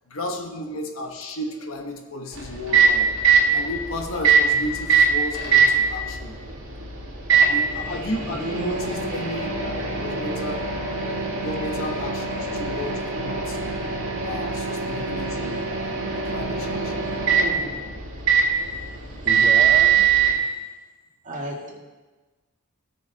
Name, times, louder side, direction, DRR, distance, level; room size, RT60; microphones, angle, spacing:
voice 1, 0.1-3.2 3.5-6.4 7.3-10.7 11.0-13.8 14.2-17.0 18.4-18.6, left 1 dB, 65° left, 4 dB, 1.1 m, -33 dB
Microwave oven, 2.3-20.3, right 6 dB, 60° right, 2.3 m, -22 dB
voice 2, 19.2-20.1 21.2-21.7, right 1 dB, 35° right, -3 dB, 2.1 m, -31 dB
16.0 x 6.4 x 3.5 m, 1.2 s
head